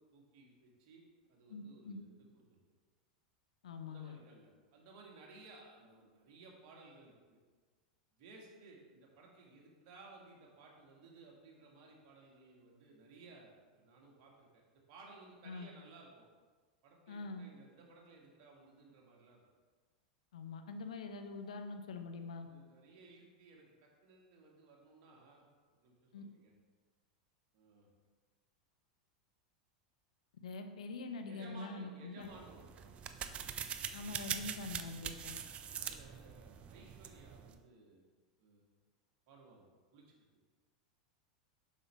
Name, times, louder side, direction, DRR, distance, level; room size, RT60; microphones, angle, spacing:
voice 1, 0.1-1.0 1.3-2.6 3.8-7.4 8.2-16.3 16.8-19.4 22.3-25.5 25.8-26.5 27.5-27.9 31.2-33.3 35.8-38.0 38.4-38.7 39.3-40.2, right 3 dB, 50° right, -1 dB, 1.8 m, -58 dB
voice 2, 1.5-2.0 3.6-4.2 15.4-15.7 17.1-17.5 20.3-22.5 26.1-26.2 30.4-32.3 33.9-35.4, left 3 dB, 70° left, 7 dB, 0.6 m, -44 dB
sound 1, 32.2-37.6, right 8 dB, 30° right, 0.4 m, -43 dB
7.4 x 5.6 x 3.5 m, 1.4 s
hypercardioid pair, 90°, 4 cm